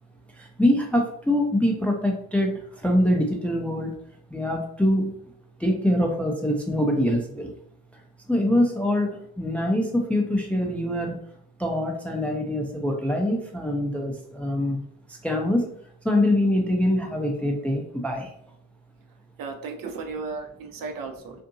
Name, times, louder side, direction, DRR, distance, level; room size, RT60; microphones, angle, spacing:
voice 1, 0.3-3.9 4.3-5.2 5.6-7.5 8.3-11.2 11.6-14.8 15.1-15.7 16.0-18.3, left 1 dB, 5° left, 1 dB, 0.4 m, -24 dB
voice 2, 19.4-21.4, right 4 dB, 50° right, 4 dB, 0.6 m, -35 dB
2.6 x 2.5 x 2.6 m, 0.68 s
hypercardioid pair, 55°, 43 cm